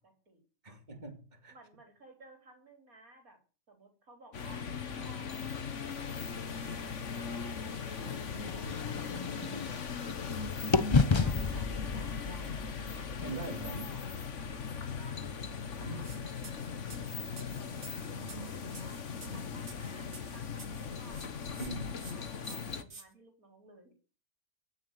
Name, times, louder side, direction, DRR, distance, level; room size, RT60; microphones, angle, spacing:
voice 1, 0.0-0.8 1.5-3.4 3.7-4.6 5.0-6.8 7.2-13.3 13.6-14.1 14.7-19.0 19.3-23.9, right 2 dB, 90° right, 4.7 m, -57 dB
voice 2, 0.6-1.5 8.6-9.0 11.0-11.3 13.2-13.8 15.8-16.0 18.1-18.5 19.2-19.7 21.6-21.9, right 2 dB, 30° right, 2.7 m, -43 dB
sound 1, 4.3-22.8, left 6 dB, 60° left, 1.6 m, -39 dB
sound 2, 8.0-10.4 10.7-14.7, left 4 dB, 30° left, 0.5 m, -32 dB
sound 3, 16.0-16.2 16.4-20.8 21.1-21.7 22.0-22.1 22.4-23.0, right 4 dB, 55° right, 2.4 m, -50 dB
15.5 x 7.4 x 9.9 m
omnidirectional pair, 1.4 m